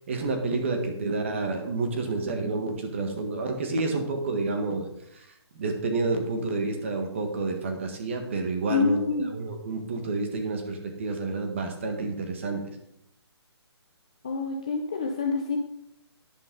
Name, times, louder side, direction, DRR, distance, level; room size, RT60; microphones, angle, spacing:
voice 1, 0.1-4.9 5.1-5.2 5.6-9.0 9.3-12.6, right 3 dB, 25° right, 4 dB, 1.5 m, -29 dB
voice 2, 8.7-9.3 14.2-15.6, left 4 dB, 15° left, 2 dB, 0.4 m, -27 dB
10.5 x 10.5 x 3.9 m, 0.78 s
hypercardioid pair, 175°, 14 cm